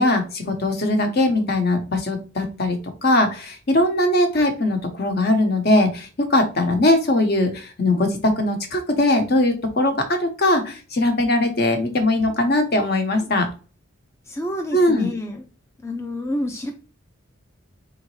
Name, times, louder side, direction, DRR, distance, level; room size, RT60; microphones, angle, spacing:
voice 1, 0.0-13.5 14.7-15.1, left 1 dB, 50° left, 5 dB, 0.9 m, -20 dB
voice 2, 14.3-15.5 15.8-16.7, left 1 dB, 15° left, 4 dB, 0.4 m, -28 dB
4.0 x 3.4 x 3.1 m, 0.35 s
head